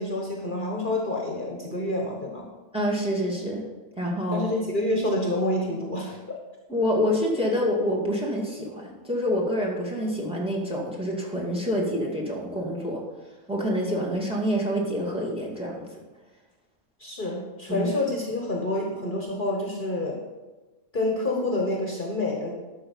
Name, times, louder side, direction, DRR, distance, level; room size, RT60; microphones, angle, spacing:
voice 1, 0.0-2.4 4.3-6.2 17.0-20.2 20.9-22.5, left 1 dB, 40° left, -1 dB, 1.6 m, -28 dB
voice 2, 2.7-3.6 4.0-4.5 6.7-13.0 13.5-15.9 17.7-17.9, equal, 5° right, -4 dB, 2.2 m, -27 dB
11.5 x 6.4 x 5.5 m, 1.2 s
omnidirectional pair, 1.3 m